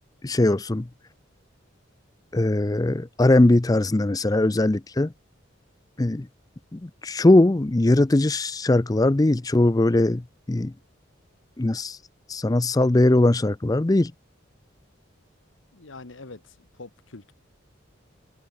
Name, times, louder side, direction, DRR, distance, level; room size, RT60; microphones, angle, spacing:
voice 1, 0.2-0.9 2.3-5.1 6.0-6.3 6.7-10.2 10.5-10.7 11.6-12.0 12.3-14.1, left 2 dB, 20° left, 0.5 m, -20 dB
voice 2, 15.7-17.3, left 3 dB, 75° left, 1.4 m, -44 dB
head